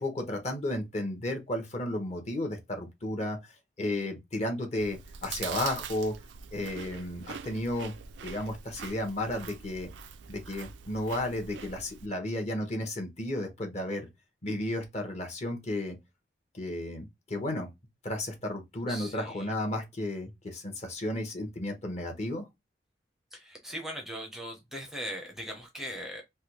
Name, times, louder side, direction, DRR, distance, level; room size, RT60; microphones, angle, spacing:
voice 1, 0.0-3.4 3.8-6.1 6.5-7.9 8.2-9.9 10.3-14.1 14.4-16.0 16.5-17.7 18.0-22.4, left 1 dB, 40° left, 0.9 m, -33 dB
Chewing mastication, 4.8-12.1, right 7 dB, 75° right, 0.4 m, -43 dB
voice 2, 18.9-19.5 23.3-26.2, equal, ahead, 0.6 m, -39 dB
3.3 x 2.2 x 2.8 m
head